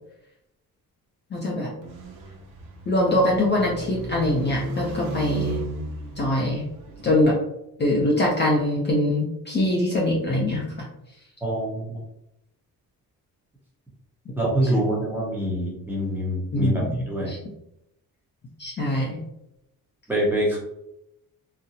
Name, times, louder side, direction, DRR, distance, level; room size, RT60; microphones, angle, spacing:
voice 1, 1.3-1.7 2.9-5.6 6.2-6.6 7.0-7.3 7.8-10.6 16.5-16.9 17.3-17.4 18.6-19.2, left 1 dB, 30° left, -3 dB, 0.5 m, -23 dB
sound 1, 1.8-7.3, right 3 dB, 80° right, 0.7 m, -34 dB
voice 2, 11.4-12.0 14.4-16.7 17.1-17.3 20.1-20.6, right 1 dB, 5° right, -5 dB, 0.8 m, -25 dB
3.9 x 2.0 x 2.7 m, 0.82 s
cardioid pair, 170°, 36 cm